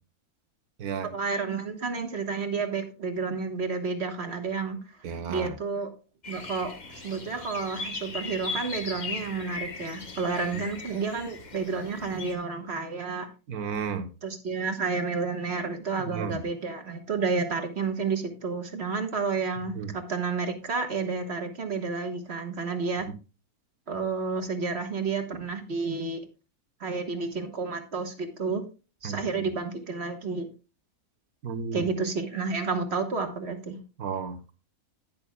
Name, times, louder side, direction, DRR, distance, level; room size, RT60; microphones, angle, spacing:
voice 1, 1.1-4.8 5.3-5.9 6.3-13.3 14.2-23.1 23.9-26.2 26.8-28.6 29.0-30.5 31.7-33.8, right 4 dB, 45° right, 1.5 m, -30 dB
voice 2, 5.0-5.5 10.5-10.6 13.5-14.0 16.1-16.4 19.7-19.9 29.0-29.2 31.4-31.9 34.0-34.5, right 6 dB, 80° right, 1.6 m, -33 dB
sound 1, 6.2-12.3, left 3 dB, 30° left, 1.2 m, -38 dB
11.0 x 10.5 x 2.3 m
omnidirectional pair, 1.6 m